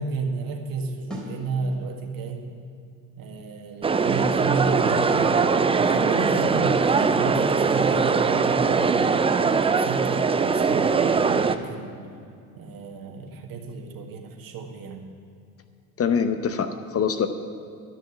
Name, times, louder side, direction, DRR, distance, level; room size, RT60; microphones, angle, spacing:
voice 1, 0.0-2.5 3.2-5.4 5.8-9.0 9.4-12.0 12.6-15.0, right 4 dB, 50° right, 2 dB, 1.8 m, -32 dB
sound 1, 1.1-1.4 4.1-4.4 7.0-7.3, equal, ahead, 3.5 m, -34 dB
sound 2, 3.8-11.6, right 5 dB, 15° right, 0.4 m, -21 dB
voice 2, 16.0-17.3, left 6 dB, 30° left, 9 dB, 0.8 m, -24 dB
12.0 x 6.4 x 8.7 m, 2.4 s
hypercardioid pair, 70°, 44 cm